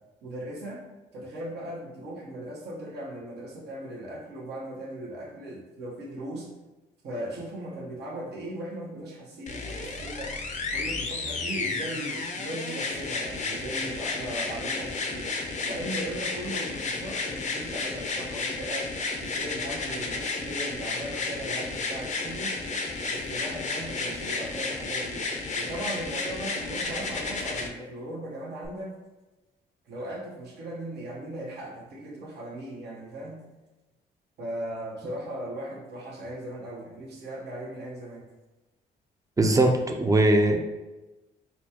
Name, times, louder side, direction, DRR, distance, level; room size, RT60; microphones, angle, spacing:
voice 1, 0.2-0.9 1.1-6.5 7.0-10.4 10.7-15.3 15.6-22.6 23.1-25.3 25.5-29.0 29.9-33.4 34.4-38.3, right 1 dB, 75° right, -4 dB, 1.1 m, -38 dB
sound 1, 9.5-27.7 28.6-28.7, left 3 dB, 45° left, 0.5 m, -32 dB
voice 2, 39.4-40.6, right 2 dB, 20° right, 4 dB, 0.5 m, -20 dB
4.1 x 2.3 x 2.9 m, 1.1 s
cardioid pair, 75°, 18 cm